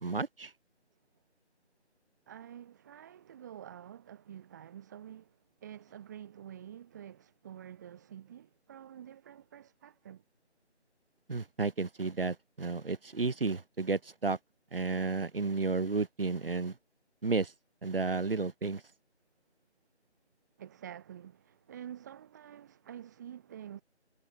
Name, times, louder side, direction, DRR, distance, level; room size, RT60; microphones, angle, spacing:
voice 1, 0.0-0.5 11.3-14.4 14.7-16.7 17.2-17.5 17.8-18.8, right 3 dB, 55° right, 1.7 m, -32 dB
voice 2, 2.3-10.2 20.6-23.8, right 10 dB, 15° right, 7.7 m, -48 dB
figure-of-eight pair, 170°, 35 cm